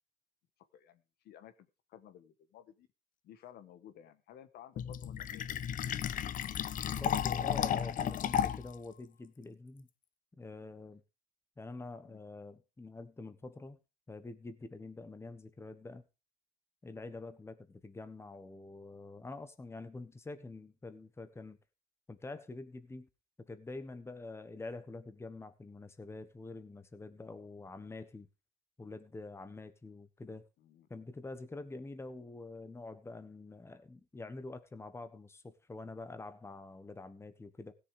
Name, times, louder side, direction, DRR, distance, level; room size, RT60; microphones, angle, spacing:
voice 1, 0.7-2.9 3.2-5.6 12.0-12.2 30.6-30.9, left 10 dB, 75° left, 1.5 m, -55 dB
Fill (with liquid), 4.8-8.8, left 9 dB, 50° left, 0.7 m, -33 dB
voice 2, 6.9-9.9 10.4-11.0 11.6-13.8 14.1-16.0 16.8-21.6 22.1-23.1 23.4-28.3 28.8-30.4 30.9-37.7, left 3 dB, 15° left, 1.3 m, -46 dB
16.5 x 6.9 x 5.0 m
cardioid pair, 110°, 17 cm